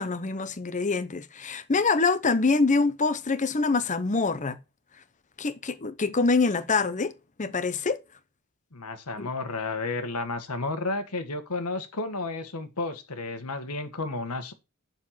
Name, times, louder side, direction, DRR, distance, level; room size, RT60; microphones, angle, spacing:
voice 1, 0.0-4.6 5.4-7.1 7.4-8.0 9.2-9.3, left 4 dB, 35° left, 0.8 m, -25 dB
voice 2, 8.7-14.5, left 3 dB, 85° left, 1.5 m, -32 dB
7.5 x 6.7 x 5.8 m
head